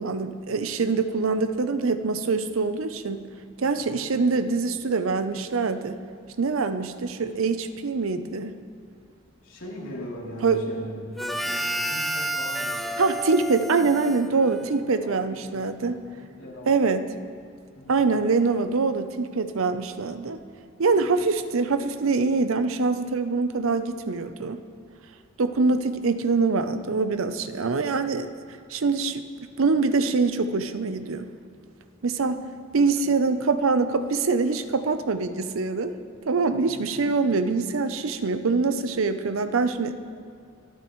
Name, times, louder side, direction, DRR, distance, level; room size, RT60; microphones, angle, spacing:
voice 1, 0.0-3.3 3.6-6.0 6.4-8.6 10.4-10.6 13.0-16.0 16.7-17.0 17.9-20.4 20.8-24.6 25.4-28.3 28.7-29.2 29.6-31.3 32.0-32.4 32.7-35.9 36.3-39.9, right 4 dB, 75° right, 10 dB, 0.6 m, -24 dB
voice 2, 3.7-4.1 9.4-13.0 14.4-14.7 15.0-16.9 17.7-18.0 21.0-21.2 36.5-36.9, equal, 75° left, -5 dB, 3.1 m, -40 dB
Harmonica, 11.2-15.0, right 1 dB, ahead, 0.3 m, -31 dB
26.5 x 9.0 x 3.1 m, 2.3 s
head